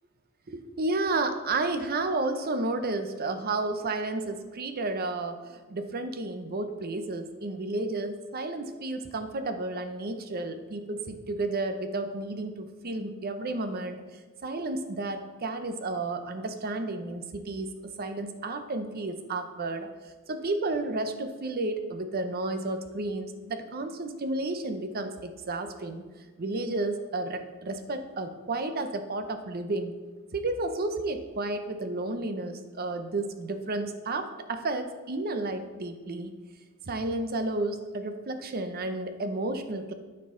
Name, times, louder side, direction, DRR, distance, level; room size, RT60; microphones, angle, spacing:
voice 1, 0.5-14.0 14.4-19.9 20.3-26.0 26.4-29.9 30.3-36.3 36.8-39.9, right 2 dB, 45° right, 8 dB, 0.7 m, -32 dB
12.5 x 4.6 x 3.8 m, 1.3 s
head